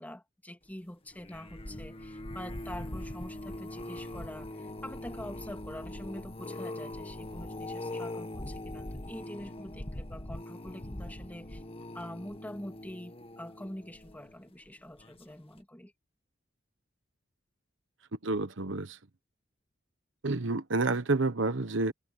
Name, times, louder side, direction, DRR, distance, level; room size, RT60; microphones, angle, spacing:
voice 1, 0.0-11.6 11.9-15.9, left 1 dB, 10° left, 3.0 m, -45 dB
sound 1, 1.1-14.5 15.0-15.3 15.6-15.7, left 1 dB, 30° left, 1.7 m, -41 dB
voice 2, 18.2-19.0 20.2-21.9, right 3 dB, 70° right, 1.2 m, -29 dB
head